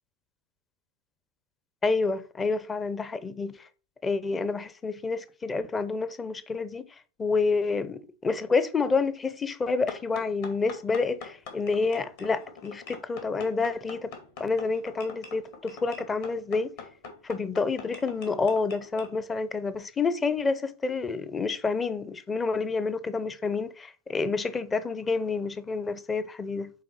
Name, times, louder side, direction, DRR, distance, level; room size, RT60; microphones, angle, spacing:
voice 1, 1.8-3.7 4.0-14.1 14.4-16.7 17.2-26.7, left 4 dB, 15° left, 0.6 m, -28 dB
sound 1, 9.9-19.1, left 4 dB, 50° left, 1.9 m, -44 dB
8.5 x 3.8 x 4.6 m
figure-of-eight pair, 90°, 0 cm